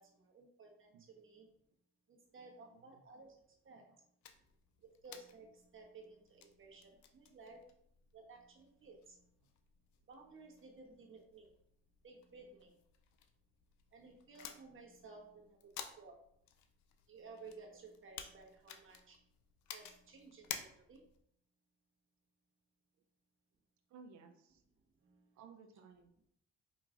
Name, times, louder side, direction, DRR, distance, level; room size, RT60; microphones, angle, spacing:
voice 1, 0.0-1.5 2.1-3.3 3.6-4.1 5.0-7.7 8.1-9.4 10.1-11.5 12.0-12.8 13.9-16.2 17.1-19.3 19.7-21.1 25.0-25.4, right 3 dB, 45° right, 0 dB, 1.2 m, -57 dB
voice 2, 2.7-3.0 3.7-4.0 23.9-24.6 25.3-26.3, right 5 dB, 75° right, 6 dB, 0.6 m, -59 dB
sound 1, 4.2-21.2, left 8 dB, 75° left, 0.5 m, -54 dB
4.8 x 3.0 x 2.5 m, 0.70 s
supercardioid pair, 70°, 29 cm